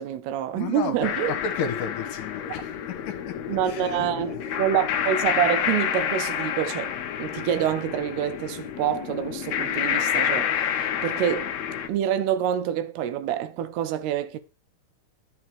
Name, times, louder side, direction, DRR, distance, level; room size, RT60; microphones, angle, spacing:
voice 1, 0.0-1.3 3.5-11.5 11.9-14.4, right 10 dB, 80° right, 2.8 m, -27 dB
voice 2, 0.6-2.8 3.1-3.2 3.6-4.6, left 6 dB, 65° left, 2.5 m, -33 dB
sound 1, 1.0-11.9, left 9 dB, 90° left, 1.5 m, -29 dB
11.0 x 7.0 x 4.8 m
omnidirectional pair, 4.6 m